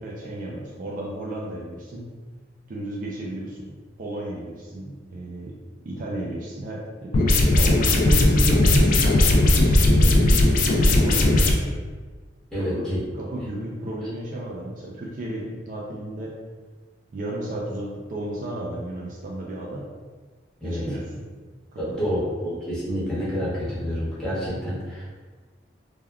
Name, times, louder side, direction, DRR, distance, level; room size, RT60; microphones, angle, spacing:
voice 1, 0.0-2.1 2.7-5.6 5.8-9.2 9.6-11.8 12.5-12.9 13.2-16.4 17.1-19.9 20.6-21.3 21.7-22.2, right 1 dB, 45° right, -3 dB, 0.4 m, -33 dB
sound 1, 7.1-11.5, left 2 dB, 45° left, 0.3 m, -17 dB
voice 2, 12.5-13.0 20.6-20.8 21.8-25.1, equal, 5° left, -11 dB, 1.0 m, -28 dB
3.4 x 2.2 x 2.2 m, 1.4 s
head